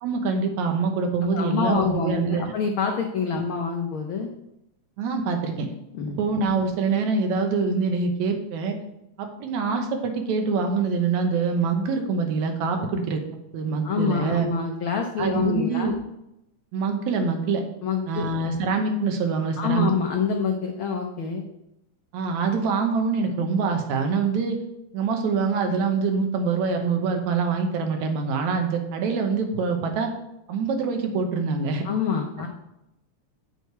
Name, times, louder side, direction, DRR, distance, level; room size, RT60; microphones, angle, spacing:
voice 1, 0.0-2.5 3.4-3.5 5.0-5.7 6.2-8.8 9.2-13.2 13.5-14.5 15.2-16.0 16.7-17.6 18.1-19.9 22.1-24.6 24.9-30.1 30.5-31.8, right 4 dB, 75° right, 5 dB, 2.3 m, -25 dB
voice 2, 1.2-4.3 5.9-6.2 13.8-15.9 17.8-18.3 19.6-21.4 31.8-32.5, left 5 dB, 85° left, 2 dB, 1.1 m, -26 dB
8.3 x 6.5 x 4.5 m, 0.85 s
omnidirectional pair, 3.4 m